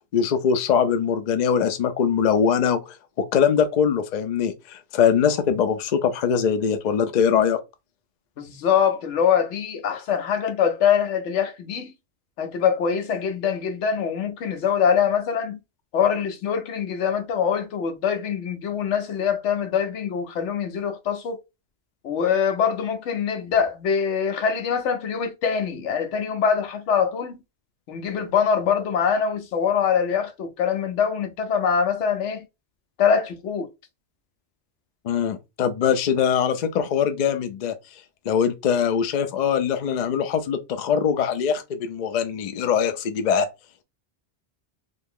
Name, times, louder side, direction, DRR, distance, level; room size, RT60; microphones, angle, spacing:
voice 1, 0.1-2.8 3.2-7.6 35.0-37.7 38.3-43.5, left 7 dB, 55° left, 0.5 m, -22 dB
voice 2, 8.4-11.9 12.4-15.6 15.9-21.4 22.0-27.4 27.9-32.4 33.0-33.7, left 7 dB, 85° left, 1.0 m, -23 dB
2.8 x 2.6 x 3.6 m
omnidirectional pair, 1.2 m